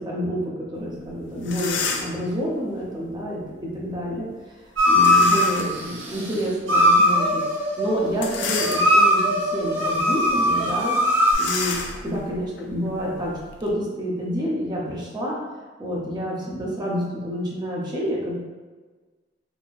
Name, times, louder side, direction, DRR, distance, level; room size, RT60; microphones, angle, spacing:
voice 1, 0.0-4.3 4.9-7.4 7.8-11.0 11.4-11.8 12.0-15.4 15.8-18.3, equal, 20° right, -4 dB, 0.7 m, -28 dB
sound 1, 1.0-1.1 1.4-2.3 4.9-5.8 6.3-6.4 8.1-9.2 9.8-10.0 10.2-10.4 11.3-13.7, left 5 dB, 70° left, 0.4 m, -30 dB
sound 2, 4.8-5.4 6.7-11.3, left 1 dB, 75° right, 0.9 m, -19 dB
3.9 x 2.9 x 2.5 m, 1.4 s
head